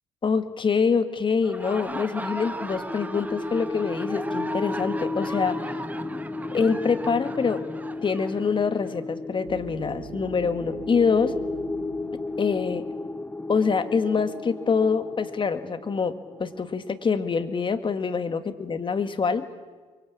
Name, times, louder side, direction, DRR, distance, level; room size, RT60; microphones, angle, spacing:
voice 1, 0.2-5.7 6.5-7.6 8.0-11.3 12.4-12.8 13.5-16.1 16.4-19.5, left 5 dB, 35° left, 10 dB, 2.2 m, -25 dB
Laughter, 1.3-9.0, right 2 dB, 10° right, 1.5 m, -38 dB
sound 1, 1.9-16.9, left 3 dB, 10° left, 1.4 m, -34 dB
sound 2, 9.5-13.4, right 8 dB, 75° right, 1.7 m, -44 dB
24.5 x 23.5 x 8.8 m, 1.4 s
hypercardioid pair, 60°, 14 cm